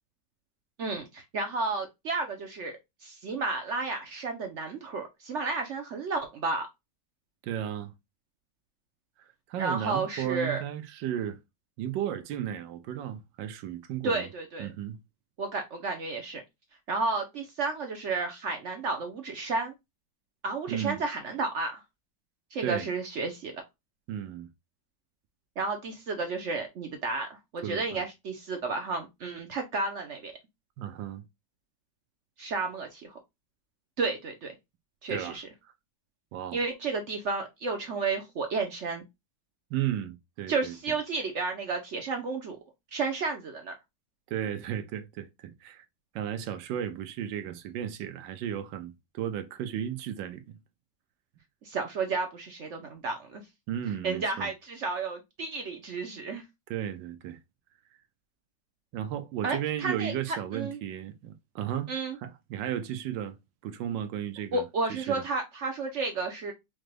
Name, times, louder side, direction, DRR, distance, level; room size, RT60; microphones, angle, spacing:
voice 1, 0.8-6.7 9.6-10.6 14.0-14.7 15.4-16.4 16.9-19.7 20.4-21.8 22.5-23.5 25.6-30.3 32.4-33.2 34.0-34.5 35.0-35.5 36.5-39.0 40.5-42.6 42.9-43.7 51.6-53.4 54.0-56.4 59.4-60.8 61.9-62.2 64.5-66.5, right 3 dB, 65° right, 0.7 m, -32 dB
voice 2, 7.4-7.9 9.5-11.4 11.8-14.3 14.6-15.0 20.7-21.0 22.6-22.9 24.1-24.5 27.6-28.0 30.8-31.2 35.1-35.4 36.3-36.6 39.7-40.7 44.3-45.9 46.1-50.6 53.7-54.5 56.7-57.4 58.9-61.9 62.2-63.4 63.6-64.6 64.9-65.2, right 10 dB, 85° right, 1.3 m, -34 dB
4.9 x 2.2 x 3.2 m
omnidirectional pair, 2.0 m